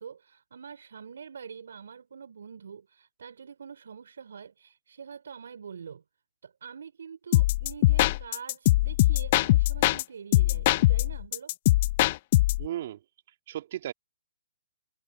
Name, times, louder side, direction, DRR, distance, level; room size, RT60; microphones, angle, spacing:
voice 1, 0.0-6.0 6.4-11.5, right 6 dB, 70° right, 4.7 m, -45 dB
sound 1, 7.3-10.0 10.3-12.7, left 17 dB, 45° left, 0.5 m, -22 dB
voice 2, 12.6-13.0 13.5-13.9, right 12 dB, 50° right, 2.5 m, -34 dB
figure-of-eight pair, 125°, 0 cm